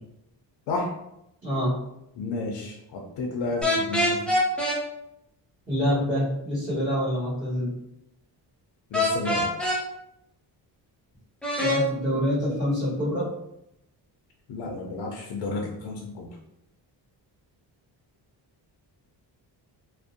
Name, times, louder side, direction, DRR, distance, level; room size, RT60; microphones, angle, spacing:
voice 1, 1.4-1.8 5.7-7.8 11.6-13.3, equal, 20° right, -12 dB, 1.2 m, -26 dB
voice 2, 2.2-4.2 8.9-9.5 14.5-16.3, left 3 dB, 75° left, 0 dB, 0.5 m, -31 dB
sound 1, 3.6-4.8 8.9-9.8 11.4-11.8, left 1 dB, 5° left, 0.4 m, -24 dB
2.5 x 2.1 x 2.6 m, 0.83 s
wide cardioid pair, 165°, 42 cm